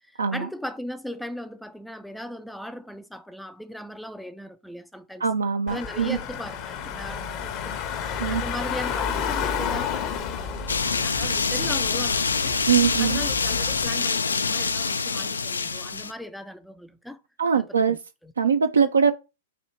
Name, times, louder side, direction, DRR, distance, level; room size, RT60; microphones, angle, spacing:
voice 1, 0.1-5.2 5.7-12.6 13.0-17.2 17.5-18.0 18.2-18.3, equal, ahead, 0.3 m, -38 dB
voice 2, 5.2-6.2 8.2-8.4 12.7-13.2 17.4-18.0 18.4-19.1, right 6 dB, 80° right, 0.4 m, -22 dB
Car / Engine, 5.7-13.9, left 7 dB, 40° left, 0.7 m, -31 dB
sound 1, 10.7-16.1, left 4 dB, 85° left, 0.3 m, -25 dB
4.2 x 2.7 x 4.3 m
hypercardioid pair, 110°, 0 cm